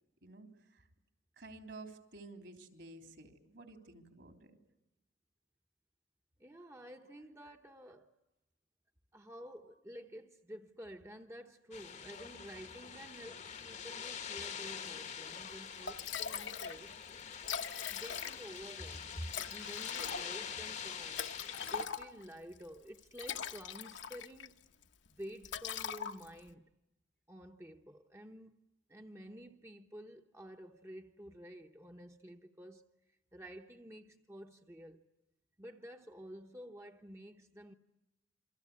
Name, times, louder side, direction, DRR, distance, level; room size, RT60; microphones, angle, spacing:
voice 1, 0.2-0.8 1.4-4.6, right 2 dB, 65° right, 3.5 m, -52 dB
voice 2, 6.4-8.1 9.1-17.0 17.9-21.2 21.7-24.7 25.1-26.7 27.3-28.6 28.9-35.0 35.6-37.7, equal, 15° right, 0.9 m, -50 dB
sound 1, 11.7-21.9, left 7 dB, 40° left, 1.0 m, -45 dB
Liquid, 15.5-15.6 15.9-16.8 17.1-17.2 17.4-18.6 19.3-22.3 23.0-24.5 24.8-25.1 25.4-26.5, left 7 dB, 70° left, 1.2 m, -41 dB
28.0 x 24.5 x 8.5 m
head